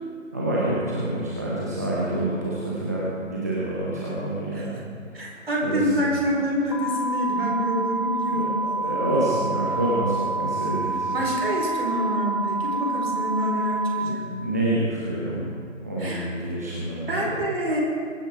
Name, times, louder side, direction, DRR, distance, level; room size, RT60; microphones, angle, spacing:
voice 1, 0.3-6.0 8.3-11.2 14.0-15.5 15.8-17.3, right 1 dB, 10° right, -7 dB, 1.0 m, -28 dB
voice 2, 5.1-9.0 11.1-14.2 16.0-16.3 17.1-17.8, equal, 45° right, -2 dB, 4.8 m, -26 dB
sound 1, 6.7-13.9, right 3 dB, 20° left, 1.4 m, -28 dB
24.0 x 9.8 x 4.8 m, 2.2 s
figure-of-eight pair, 160°, 40 cm